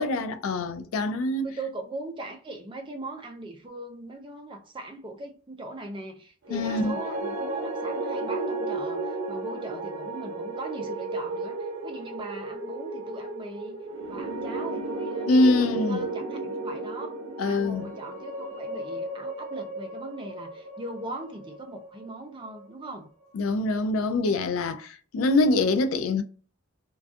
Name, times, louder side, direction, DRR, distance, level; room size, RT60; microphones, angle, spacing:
voice 1, 0.0-1.5 6.5-6.9 15.3-16.1 17.4-17.9 23.3-26.2, left 2 dB, 80° left, 0.3 m, -24 dB
voice 2, 1.4-13.8 14.1-15.3 15.6-17.2 17.4-23.1, right 2 dB, 25° right, 0.4 m, -40 dB
sound 1, 6.5-22.8, right 2 dB, 85° right, 0.6 m, -34 dB
2.5 x 2.3 x 2.3 m
head